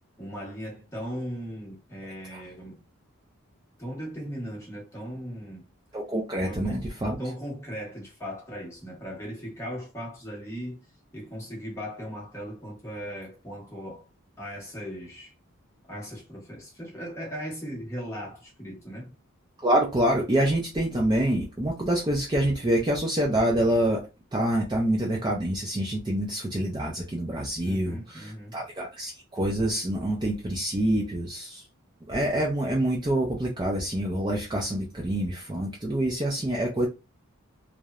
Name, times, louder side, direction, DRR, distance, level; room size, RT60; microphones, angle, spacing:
voice 1, 0.2-2.8 3.8-5.6 6.4-6.8 7.2-10.8 11.1-14.1 14.4-15.3 15.9-19.1 27.6-28.6, equal, 15° left, 0.8 m, -38 dB
voice 2, 5.9-7.2 19.6-24.0 24.3-31.6 32.1-36.9, right 1 dB, 20° right, 0.4 m, -26 dB
2.9 x 2.0 x 2.3 m
head